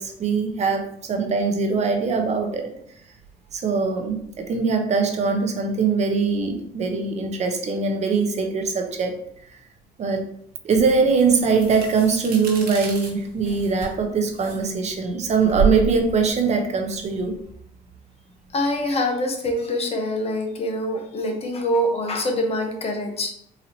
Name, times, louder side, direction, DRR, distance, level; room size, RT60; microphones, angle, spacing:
voice 1, 0.0-2.7 3.5-9.2 10.0-10.2 10.6-17.3, right 4 dB, 40° right, 3 dB, 0.8 m, -22 dB
sound 1, 10.8-17.5, right 5 dB, 60° right, 1.4 m, -30 dB
voice 2, 18.5-23.3, left 1 dB, 35° left, 3 dB, 0.8 m, -25 dB
4.0 x 2.8 x 2.7 m, 0.70 s
cardioid pair, 110°, 17 cm